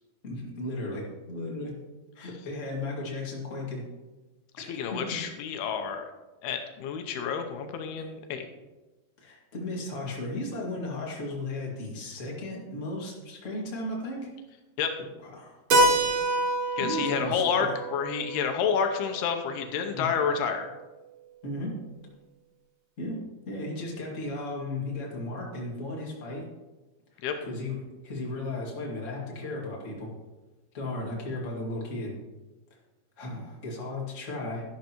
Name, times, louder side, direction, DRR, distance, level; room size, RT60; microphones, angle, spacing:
voice 1, 0.2-1.8 2.1-3.8 4.5-5.0 9.2-14.3 15.3-15.6 16.8-17.8 19.9-20.1 21.4-21.8 23.0-26.4 27.4-27.8 28.0-30.1 30.7-32.2 33.2-34.6, left 2 dB, 30° left, -3 dB, 1.5 m, -35 dB
voice 2, 4.7-6.1 6.4-8.5 14.8-14.9 16.8-20.7 27.2-27.3, left 7 dB, 80° left, 5 dB, 2.7 m, -29 dB
Keyboard (musical), 15.7-20.2, right 1 dB, 60° right, 1.7 m, -27 dB
12.0 x 11.5 x 3.0 m, 1.2 s
omnidirectional pair, 4.6 m